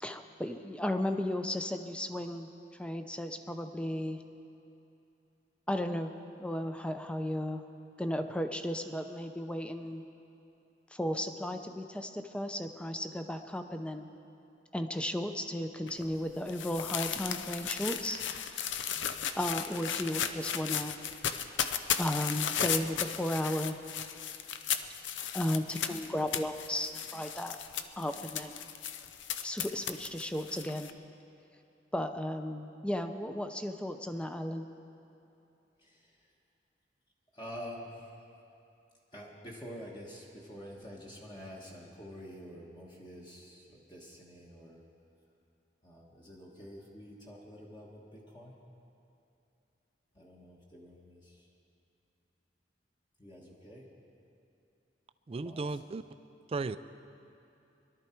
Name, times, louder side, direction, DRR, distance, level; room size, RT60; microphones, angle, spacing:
voice 1, 0.0-2.5 2.8-4.2 5.7-6.1 6.4-7.6 8.0-10.0 10.9-14.1 14.7-18.2 18.6-18.9 19.3-21.0 22.0-23.8 25.3-27.6 28.0-28.7 29.4-30.9 31.9-34.6, left 1 dB, 5° left, 7 dB, 0.6 m, -34 dB
sound 1, 15.9-30.9, left 8 dB, 85° left, 0.6 m, -36 dB
voice 2, 35.8-36.3 37.3-38.1 39.1-44.8 45.8-48.5 50.1-51.5 53.2-53.9 55.4-55.8, equal, 25° left, -4 dB, 1.4 m, -48 dB
voice 3, 55.3-56.0 56.5-56.8, right 3 dB, 30° right, 13 dB, 0.4 m, -35 dB
22.0 x 12.0 x 4.5 m, 2.8 s
head